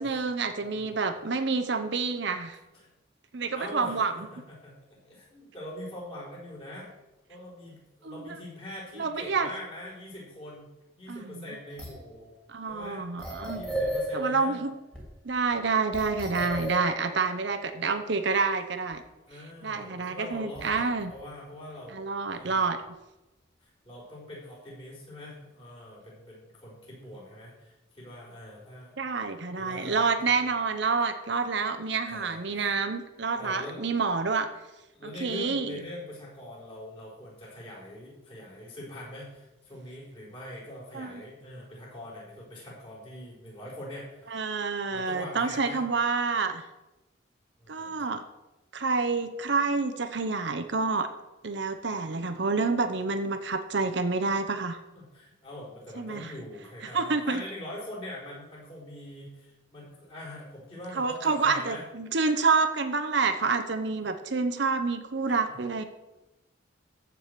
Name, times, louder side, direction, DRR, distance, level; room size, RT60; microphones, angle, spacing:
voice 1, 0.0-2.6 3.3-4.1 8.0-8.1 9.0-9.5 11.1-11.3 12.5-13.6 14.1-14.7 15.2-19.0 19.6-21.1 21.9-22.8 29.0-34.5 35.0-35.7 40.9-41.1 44.3-46.6 47.7-48.2 48.7-51.1 51.4-54.8 56.0-56.3 56.9-57.4 61.0-65.8, right 4 dB, 60° right, 7 dB, 0.8 m, -28 dB
voice 2, 0.6-1.1 2.7-2.9 3.5-6.9 7.3-10.7 11.0-12.3 12.7-13.0 13.5-14.6 16.9-17.4 19.3-22.0 22.3-22.7 23.6-29.0 29.6-30.5 32.1-32.7 33.3-33.8 34.9-44.5 44.9-45.8 47.6-48.0 54.9-61.8 64.0-64.1 65.3-65.6, left 1 dB, 30° left, -6 dB, 4.5 m, -43 dB
sound 1, 11.7-12.1 12.8-12.9 13.2-15.1 15.4-15.5 15.9-18.5 18.9-19.0 20.3-21.2, equal, 5° left, 2.7 m, -35 dB
14.5 x 4.9 x 6.7 m, 1.0 s
head